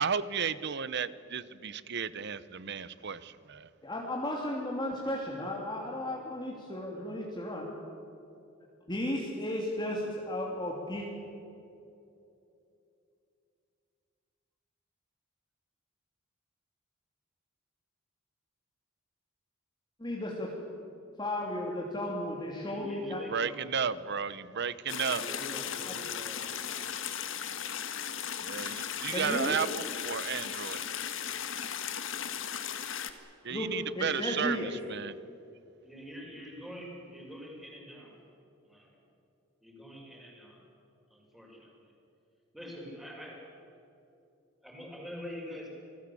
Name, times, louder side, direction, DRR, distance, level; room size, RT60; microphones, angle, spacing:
voice 1, 0.0-3.7 23.1-25.3 28.4-30.9 33.4-35.1, right 6 dB, 55° right, 16 dB, 0.9 m, -33 dB
voice 2, 3.8-7.8 8.9-11.1 20.0-20.5 21.2-23.2 25.9-26.0 29.1-29.6 33.5-33.7 33.9-34.7, left 1 dB, 20° left, -2 dB, 2.8 m, -34 dB
voice 3, 22.6-23.6 25.0-26.9 27.4-27.8 33.9-34.1 35.8-38.2 38.6-39.0 39.6-40.6 41.1-41.9 42.5-43.6 44.6-45.7, equal, ahead, -2 dB, 6.5 m, -46 dB
sound 1, 24.9-33.1, left 9 dB, 65° left, 1.6 m, -36 dB
28.5 x 19.5 x 8.5 m, 2.7 s
head